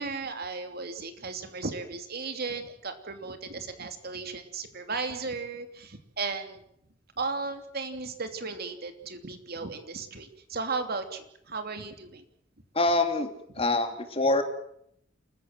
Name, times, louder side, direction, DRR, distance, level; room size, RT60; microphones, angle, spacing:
voice 1, 0.0-6.6 7.2-12.2, right 4 dB, 55° right, 7 dB, 2.9 m, -35 dB
voice 2, 12.7-13.3 13.6-14.4, left 2 dB, 30° left, 6 dB, 3.0 m, -25 dB
28.0 x 15.0 x 7.9 m, 0.70 s
head